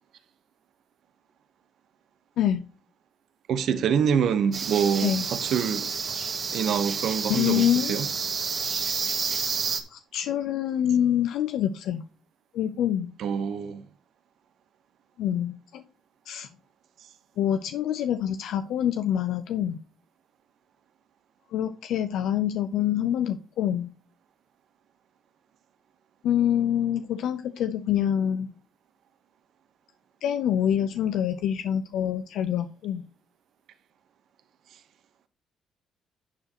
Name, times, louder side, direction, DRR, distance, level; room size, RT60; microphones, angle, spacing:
voice 1, 3.5-5.9 6.5-8.1 13.2-13.8, right 7 dB, 70° right, 1.1 m, -26 dB
sound 1, 4.5-9.8, right 5 dB, 50° right, 1.8 m, -30 dB
voice 2, 7.3-8.0 9.9-12.0 12.5-13.1 15.2-15.8 16.3-16.5 17.4-19.8 21.5-23.9 26.2-28.5 30.2-33.0, left 10 dB, 80° left, 0.6 m, -26 dB
11.5 x 6.6 x 3.0 m
cardioid pair, 90°, 0 cm